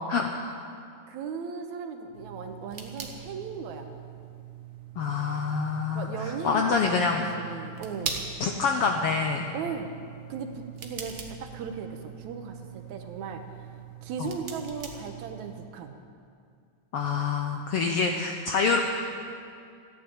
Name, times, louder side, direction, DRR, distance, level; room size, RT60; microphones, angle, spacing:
voice 1, 1.1-3.9 5.9-8.2 8.5-8.6 9.5-9.9 10.3-13.4 14.0-16.0, right 5 dB, 75° right, 6 dB, 2.3 m, -37 dB
sound 1, 2.1-15.7, right 6 dB, 55° right, 0.8 m, -42 dB
voice 2, 5.0-7.3 8.4-9.5 14.2-14.3 16.9-18.8, left 5 dB, 70° left, 3 dB, 1.4 m, -26 dB
15.0 x 10.5 x 8.7 m, 2.3 s
omnidirectional pair, 3.6 m